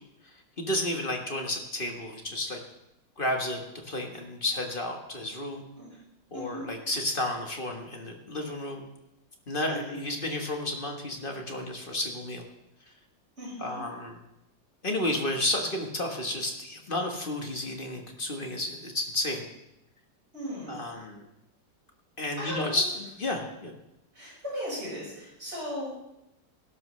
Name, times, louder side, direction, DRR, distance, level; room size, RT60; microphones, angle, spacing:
voice 1, 0.2-2.6 3.2-5.7 6.3-8.8 9.5-12.4 13.6-14.2 14.8-19.5 20.7-21.2 22.2-22.8 23.2-23.7, left 1 dB, 30° left, 3 dB, 1.3 m, -32 dB
voice 2, 6.3-6.7 9.7-10.0 13.4-13.8 20.3-20.8 22.4-22.9 24.1-25.9, equal, 35° right, -6 dB, 5.6 m, -37 dB
18.0 x 11.5 x 3.2 m, 0.88 s
omnidirectional pair, 2.0 m